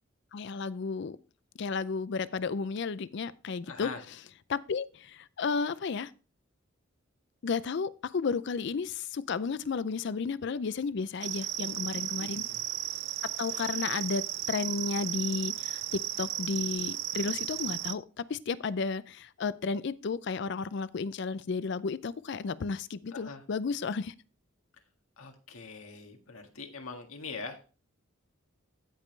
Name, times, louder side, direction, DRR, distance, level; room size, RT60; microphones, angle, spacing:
voice 1, 0.3-1.2 1.6-3.9 4.5-6.1 7.4-12.4 13.2-24.1, left 5 dB, 55° left, 0.4 m, -33 dB
voice 2, 3.7-4.0 11.9-12.6 13.5-13.8 23.1-23.4 25.2-27.6, left 4 dB, 85° left, 1.7 m, -43 dB
sound 1, 11.2-17.9, right 13 dB, 55° right, 0.5 m, -35 dB
15.0 x 5.3 x 3.2 m
head